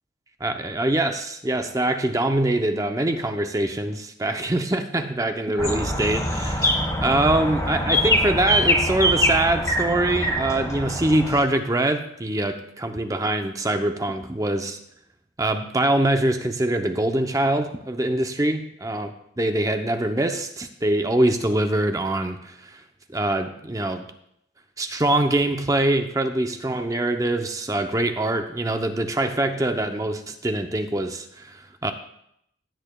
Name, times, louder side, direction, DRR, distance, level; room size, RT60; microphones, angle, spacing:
voice 1, 0.4-14.8 15.4-19.1 19.4-22.8 23.1-24.1 24.8-31.9, right 1 dB, 20° right, 6 dB, 0.6 m, -24 dB
sound 1, 5.6-11.4, equal, 15° left, 1.3 m, -23 dB
16.5 x 8.6 x 2.3 m, 0.74 s
head